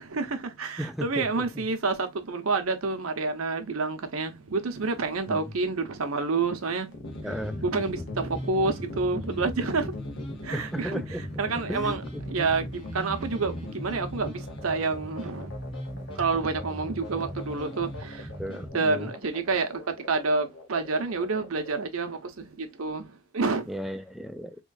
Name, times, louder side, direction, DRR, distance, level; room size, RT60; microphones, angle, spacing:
voice 1, 0.0-6.9 7.6-9.9 10.4-11.0 11.4-12.0 12.3-15.5 16.2-18.1 18.7-19.8 20.1-22.2 22.6-23.0 23.3-23.7, right 4 dB, 90° right, 0.8 m, -28 dB
voice 2, 0.8-1.4 5.3-5.4 7.2-7.6 10.5-11.2 11.7-12.2 18.4-19.1 23.7-24.6, equal, ahead, 0.3 m, -35 dB
sound 1, 6.9-21.7, left 2 dB, 70° left, 1.0 m, -41 dB
sound 2, 7.0-18.7, equal, 25° left, 1.0 m, -39 dB
3.6 x 3.1 x 2.3 m
head